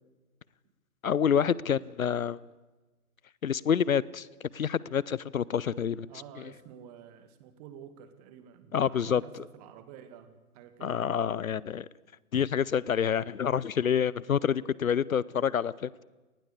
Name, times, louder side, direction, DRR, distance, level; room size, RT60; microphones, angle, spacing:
voice 1, 1.0-2.4 3.4-4.3 4.5-6.1 8.7-9.2 10.8-11.9 12.3-16.0, left 8 dB, 65° left, 22 dB, 0.8 m, -27 dB
voice 2, 6.1-11.0, right 9 dB, 25° right, 11 dB, 2.2 m, -50 dB
28.0 x 19.5 x 8.3 m, 1.2 s
figure-of-eight pair, 130°, 45 cm